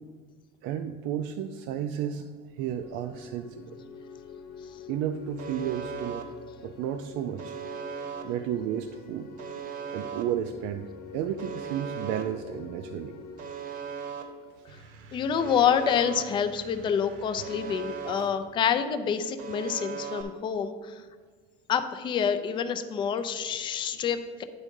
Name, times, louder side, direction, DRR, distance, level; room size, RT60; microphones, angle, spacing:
voice 1, 0.6-2.3 2.6-3.8 4.9-6.3 6.6-7.6 8.2-9.3 9.9-10.9 11.1-13.2 17.4-17.5 18.2-18.3, right 9 dB, 60° right, 7 dB, 0.4 m, -32 dB
sound 1, 2.5-15.1, left 4 dB, 45° left, 0.9 m, -46 dB
Alarm, 5.4-6.2 7.4-8.2 9.4-10.2 11.4-12.2 13.4-14.2 15.4-16.2 17.4-18.2 19.4-20.2, right 7 dB, 40° right, 0.8 m, -37 dB
sound 2, 14.7-18.6, right 2 dB, 85° right, 1.0 m, -51 dB
voice 2, 15.1-21.0 21.7-24.4, left 7 dB, 25° left, 9 dB, 0.3 m, -27 dB
10.0 x 3.6 x 5.2 m, 1.5 s
cardioid pair, 175°, 21 cm